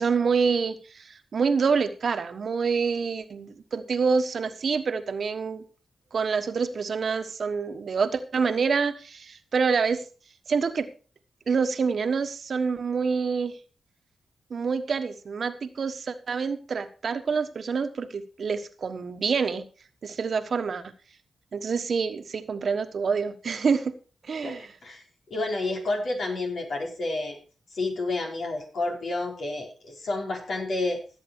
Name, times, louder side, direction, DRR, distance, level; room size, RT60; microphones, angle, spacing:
voice 1, 0.0-5.6 6.1-10.0 10.5-10.9 11.5-13.6 14.5-19.7 20.0-20.8 21.5-23.9 24.2-24.7, right 5 dB, 65° right, 9 dB, 1.3 m, -27 dB
voice 2, 24.4-25.0 25.3-27.4 27.7-31.0, left 2 dB, 70° left, 0 dB, 4.7 m, -30 dB
16.0 x 7.8 x 4.6 m, 0.36 s
supercardioid pair, 45°, 0 cm